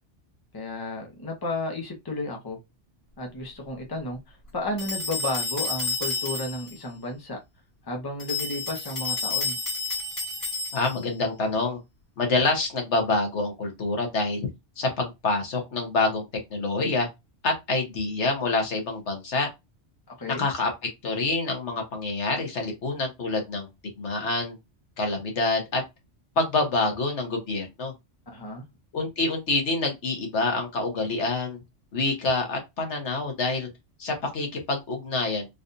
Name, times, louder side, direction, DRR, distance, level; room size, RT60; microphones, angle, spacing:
voice 1, 0.5-2.6 3.2-7.4 7.8-9.6 20.2-20.5 28.3-28.6, left 2 dB, 20° left, 0.9 m, -33 dB
sound 1, 4.8-6.7 8.2-11.1, left 3 dB, 55° left, 2.0 m, -30 dB
voice 2, 10.7-11.8 12.2-14.5 14.8-16.2 16.5-17.1 17.4-19.5 20.4-20.7 21.0-23.7 24.0-24.5 25.0-25.8 26.4-27.9 28.9-31.6 31.9-33.7 34.0-35.5, left 3 dB, 75° left, 1.5 m, -26 dB
4.0 x 2.6 x 2.6 m
omnidirectional pair, 1.2 m